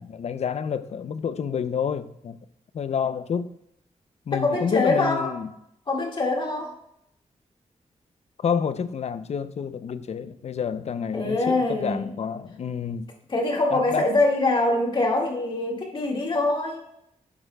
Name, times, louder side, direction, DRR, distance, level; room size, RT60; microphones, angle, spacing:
voice 1, 0.0-2.4 2.7-3.5 4.3-5.5 8.4-13.1 13.7-14.1, left 7 dB, 60° left, 0.5 m, -29 dB
voice 2, 4.4-5.4 5.9-6.7 11.1-12.0 13.3-16.9, left 2 dB, 40° left, 1.9 m, -24 dB
11.0 x 8.7 x 2.2 m
wide cardioid pair, 125°, 12 cm